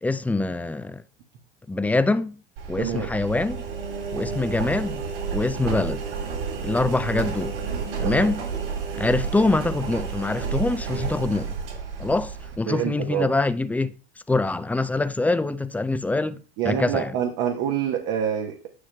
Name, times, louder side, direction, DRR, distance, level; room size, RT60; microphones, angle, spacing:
voice 1, 0.0-1.0 1.7-2.4 2.7-3.7 4.1-5.0 5.3-6.0 6.6-7.6 8.0-8.4 9.0-11.5 12.0-13.9 14.3-17.1, left 2 dB, 5° left, 0.3 m, -24 dB
Engine, 2.6-12.6, right 5 dB, 70° right, 3.2 m, -31 dB
voice 2, 2.8-3.1 8.0-8.3 12.7-13.3 16.6-18.7, right 9 dB, 55° right, 1.0 m, -26 dB
9.9 x 5.7 x 2.2 m
hypercardioid pair, 90°, 29 cm